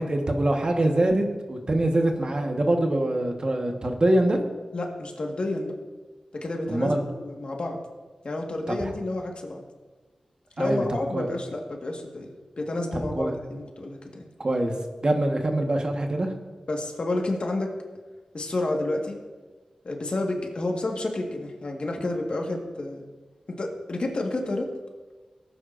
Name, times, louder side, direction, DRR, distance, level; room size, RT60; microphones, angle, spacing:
voice 1, 0.0-4.4 6.7-7.0 8.7-8.9 10.6-10.8 11.1-11.3 12.9-13.3 14.4-14.7 15.0-16.3, right 1 dB, 45° right, 3 dB, 1.4 m, -24 dB
voice 2, 4.7-5.7 6.3-7.8 8.2-9.6 10.6-14.3 16.7-17.7 18.3-19.2 19.8-23.0 23.5-24.7, left 2 dB, 60° left, 1 dB, 1.7 m, -30 dB
17.5 x 9.2 x 2.6 m, 1.3 s
wide cardioid pair, 70°, 2 cm